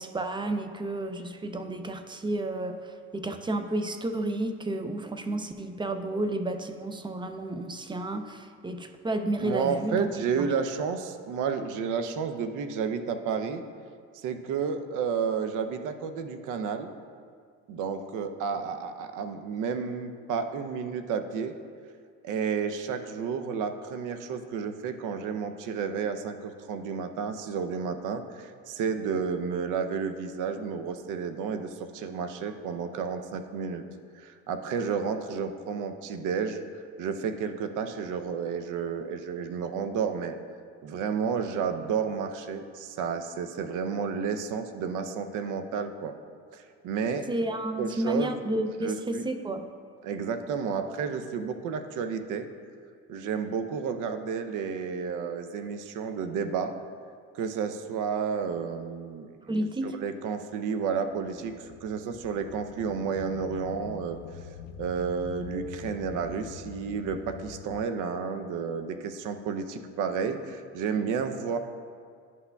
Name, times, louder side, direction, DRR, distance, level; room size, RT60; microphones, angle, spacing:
voice 1, 0.0-10.1 10.4-10.5 47.3-49.7 59.5-60.0, right 1 dB, 15° right, 7 dB, 0.4 m, -31 dB
voice 2, 9.4-13.6 14.1-16.9 17.7-21.5 22.2-33.8 34.1-36.6 37.0-40.4 40.8-46.1 46.5-47.3 47.8-48.4 48.8-49.3 50.0-52.5 53.1-56.7 57.3-64.2 64.8-71.6, right 6 dB, 60° right, 8 dB, 0.7 m, -31 dB
sound 1, 61.1-67.8, left 8 dB, 80° left, 0.5 m, -44 dB
11.0 x 5.8 x 2.3 m, 2.1 s
supercardioid pair, 80°, 36 cm